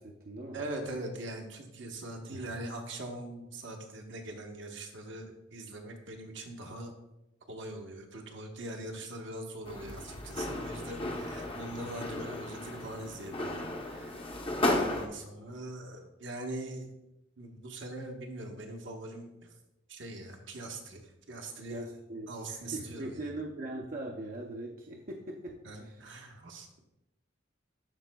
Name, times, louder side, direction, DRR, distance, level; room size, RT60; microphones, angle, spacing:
voice 1, 0.0-0.6 2.3-2.5 21.7-26.0, right 1 dB, 45° right, 0 dB, 0.5 m, -41 dB
voice 2, 0.5-6.9 7.5-14.4 14.7-16.9 17.4-19.5 19.9-21.8 22.3-23.3 25.6-26.8, right 1 dB, 70° right, 3 dB, 1.0 m, -42 dB
sound 1, 9.7-15.1, left 2 dB, 30° left, 0.7 m, -34 dB
12.5 x 4.2 x 2.2 m, 0.94 s
head